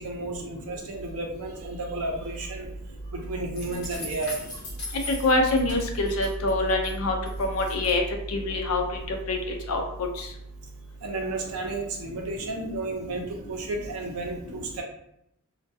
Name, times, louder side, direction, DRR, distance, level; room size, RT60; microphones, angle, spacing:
voice 1, 0.0-2.7 3.1-4.3 11.0-14.8, right 2 dB, 75° right, 2 dB, 0.5 m, -32 dB
sound 1, 3.5-6.9 7.3-7.9, left 2 dB, 50° left, 0.8 m, -40 dB
voice 2, 5.1-8.0 8.3-8.8 9.1-9.4 9.7-9.8 10.2-10.3, left 2 dB, 75° left, 3 dB, 0.5 m, -25 dB
2.2 x 2.2 x 2.6 m, 0.75 s
head